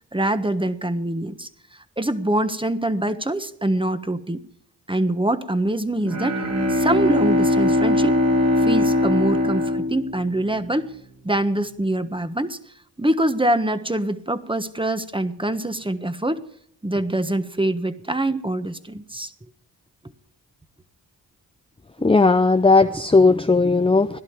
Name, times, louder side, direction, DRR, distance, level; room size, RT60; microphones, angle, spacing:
voice 1, 0.1-1.5 2.0-4.4 4.9-6.4 6.7-8.2 8.6-10.9 11.2-12.6 13.0-16.4 16.8-19.3, right 1 dB, 10° right, 10 dB, 1.3 m, -24 dB
Bowed string instrument, 6.0-10.9, left 1 dB, 40° right, 2.6 m, -21 dB
voice 2, 22.0-24.2, left 3 dB, 15° left, 9 dB, 0.6 m, -16 dB
17.0 x 11.5 x 4.8 m, 0.67 s
cardioid pair, 45°, 41 cm